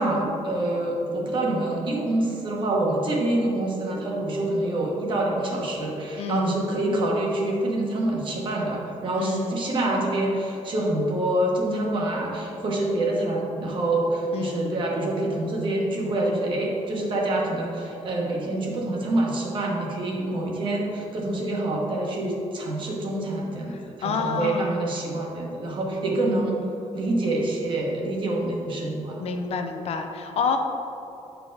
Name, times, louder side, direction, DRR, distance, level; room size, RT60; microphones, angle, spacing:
voice 1, 0.0-26.6 26.9-29.2, right 1 dB, 45° right, -2 dB, 1.2 m, -26 dB
voice 2, 6.2-6.6 9.1-9.6 14.3-14.8 23.7-24.9 29.2-30.6, left 5 dB, 60° left, 5 dB, 0.6 m, -29 dB
7.9 x 4.6 x 3.9 m, 2.9 s
cardioid pair, 170°, 12 cm